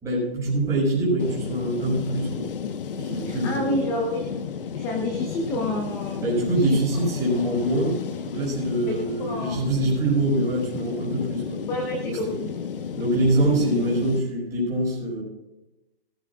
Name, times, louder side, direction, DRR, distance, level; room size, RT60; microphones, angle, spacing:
voice 1, 0.0-2.5 3.0-3.9 6.2-8.0 8.2-11.6 12.9-15.2, right 1 dB, 10° right, -5 dB, 5.3 m, -24 dB
sound 1, 1.2-14.2, left 6 dB, 65° left, 1.2 m, -33 dB
voice 2, 3.2-4.3 4.7-6.3 6.6-6.8 8.9-9.6 11.7-12.6, left 1 dB, 10° left, 2 dB, 0.8 m, -29 dB
19.5 x 14.5 x 2.4 m, 0.97 s
hypercardioid pair, 165°, 29 cm